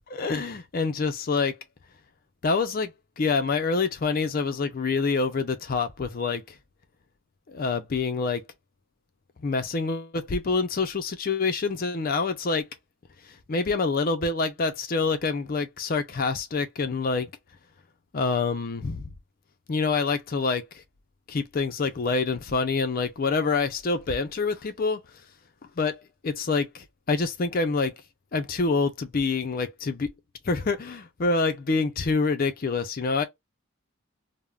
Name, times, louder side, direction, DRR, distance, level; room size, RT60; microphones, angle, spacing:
voice 1, 0.1-1.6 2.4-6.4 7.5-8.4 9.4-12.7 13.5-17.3 18.1-19.0 19.7-20.8 21.3-25.0 25.8-27.9 28.3-30.1 30.4-33.2, left 4 dB, 45° left, 0.4 m, -26 dB
3.5 x 2.0 x 2.3 m
head